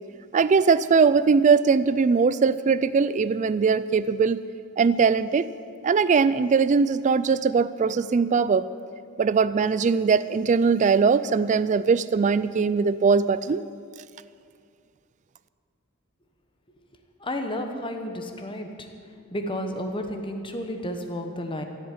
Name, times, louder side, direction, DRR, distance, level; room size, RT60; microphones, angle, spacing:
voice 1, 0.3-4.4 4.8-5.5 5.8-8.7 9.2-13.6, right 5 dB, 35° right, 15 dB, 0.3 m, -21 dB
voice 2, 17.2-18.9 19.3-21.6, left 1 dB, 25° left, 5 dB, 1.2 m, -32 dB
14.0 x 8.1 x 9.5 m, 2.3 s
head